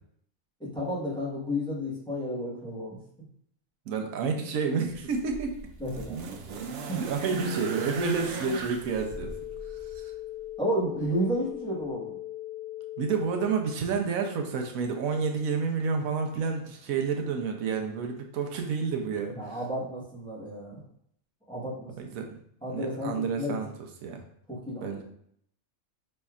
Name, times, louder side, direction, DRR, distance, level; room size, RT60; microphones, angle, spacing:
voice 1, 0.6-3.0 5.8-6.2 6.8-7.0 10.6-12.2 19.3-20.8 21.5-22.1 22.6-23.5 24.5-25.0, equal, 5° left, -6 dB, 1.0 m, -32 dB
voice 2, 3.9-5.5 7.0-9.3 9.9-10.1 13.0-19.6 22.0-22.2 22.7-23.7 24.0-24.2 24.8-25.0, right 5 dB, 90° right, 4 dB, 1.1 m, -29 dB
sound 1, 4.8-10.1 11.1-11.2, right 3 dB, 65° right, 0.8 m, -39 dB
sound 2, 8.8-13.8, left 14 dB, 65° left, 0.5 m, -39 dB
5.2 x 3.3 x 2.4 m, 0.69 s
omnidirectional pair, 1.4 m